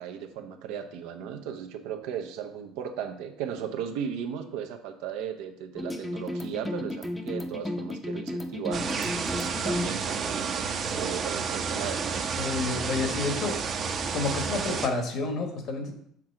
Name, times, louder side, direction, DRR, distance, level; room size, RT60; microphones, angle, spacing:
voice 1, 0.0-9.2 9.5-12.0, right 8 dB, 85° right, 6 dB, 0.8 m, -36 dB
sound 1, 5.8-9.9, left 1 dB, 5° left, 0.7 m, -33 dB
sound 2, 8.7-14.9, right 5 dB, 40° right, 0.8 m, -30 dB
voice 2, 12.3-13.6 14.1-15.9, left 3 dB, 55° left, 4 dB, 1.5 m, -30 dB
6.1 x 3.8 x 5.9 m, 0.69 s
cardioid pair, 115°, 0 cm